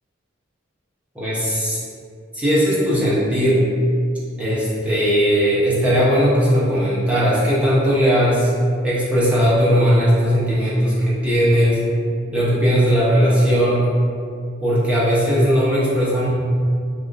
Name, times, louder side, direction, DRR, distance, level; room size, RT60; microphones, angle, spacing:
voice 1, 1.1-1.8 2.3-3.7 4.4-8.5 8.8-11.8 12.3-13.9 14.6-16.3, equal, 5° right, -9 dB, 0.7 m, -18 dB
4.2 x 3.6 x 2.5 m, 2.3 s
head